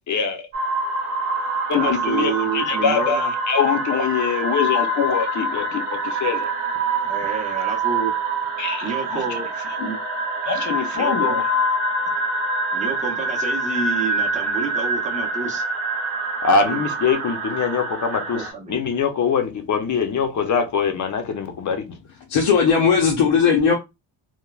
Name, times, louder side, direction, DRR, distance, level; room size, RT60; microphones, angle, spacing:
voice 1, 0.1-0.4 1.7-6.5 8.6-9.4 9.8-9.9 10.4-11.4 16.4-22.0, left 6 dB, 40° left, 0.5 m, -23 dB
sound 1, 0.5-18.5, right 2 dB, 85° right, 0.8 m, -25 dB
voice 2, 1.7-3.3 7.1-8.1 8.8-9.5 9.8-10.0 10.9-11.4 12.1-12.2 12.7-15.6 16.6-16.8 18.3-18.7, right 5 dB, 15° right, 0.5 m, -29 dB
voice 3, 22.3-23.7, left 6 dB, 85° left, 0.7 m, -17 dB
3.1 x 2.0 x 2.3 m
wide cardioid pair, 155°, 48 cm